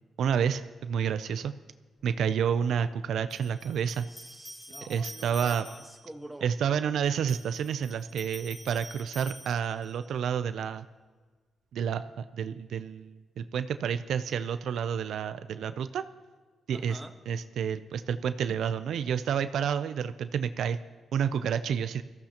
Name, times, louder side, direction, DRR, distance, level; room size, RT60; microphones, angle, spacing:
voice 1, 0.2-1.5 2.0-4.1 4.8-5.7 6.4-10.8 11.7-16.0 16.7-17.0 17.3-20.8 21.1-22.0, right 7 dB, 80° right, 11 dB, 0.5 m, -29 dB
sound 1, 2.0-2.1 3.3-6.1 7.0-10.1, equal, 15° left, 2.1 m, -47 dB
voice 2, 4.1-6.5 16.7-17.2 18.2-18.6, right 1 dB, 10° right, 5 dB, 1.3 m, -47 dB
20.5 x 14.5 x 2.9 m, 1.4 s
cardioid pair, 95°, 0 cm